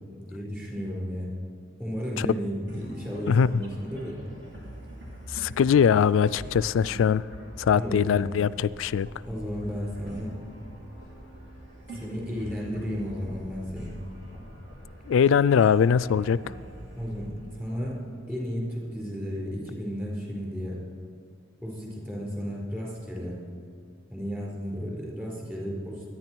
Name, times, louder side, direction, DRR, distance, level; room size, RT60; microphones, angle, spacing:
voice 1, 0.3-1.3 1.8-4.2 7.7-8.3 9.3-10.3 11.9-13.9 17.0-18.0 18.3-20.8 21.6-23.4 24.1-26.1, equal, 10° right, -4 dB, 4.2 m, -33 dB
sound 1, 2.7-18.3, equal, 60° right, 3.3 m, -43 dB
voice 2, 5.3-7.2 7.6-9.1 15.1-16.4, left 7 dB, 75° left, 19 dB, 0.3 m, -21 dB
23.5 x 10.0 x 4.6 m, 2.4 s
head